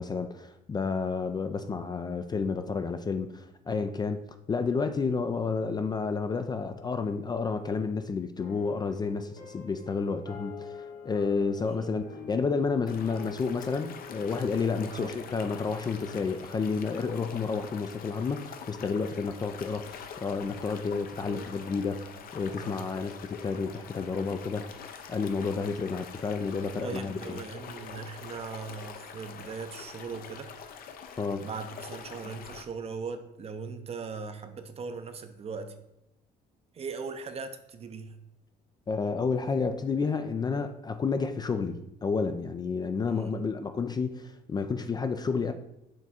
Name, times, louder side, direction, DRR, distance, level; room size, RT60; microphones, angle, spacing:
voice 1, 0.0-4.2 4.5-10.8 11.0-24.7 25.1-27.4 31.2-31.5 38.9-45.5, left 4 dB, 25° left, 9 dB, 0.3 m, -30 dB
sound 1, 8.4-16.9, left 6 dB, 85° left, 1.2 m, -47 dB
sound 2, 12.9-32.6, left 7 dB, 60° left, 0.7 m, -45 dB
voice 2, 21.2-21.5 21.8-22.0 22.6-22.8 26.8-30.5 31.4-35.7 36.7-38.1 43.1-43.4, right 5 dB, 35° right, 9 dB, 0.6 m, -39 dB
6.4 x 3.5 x 4.2 m, 0.86 s
cardioid pair, 110°, 17 cm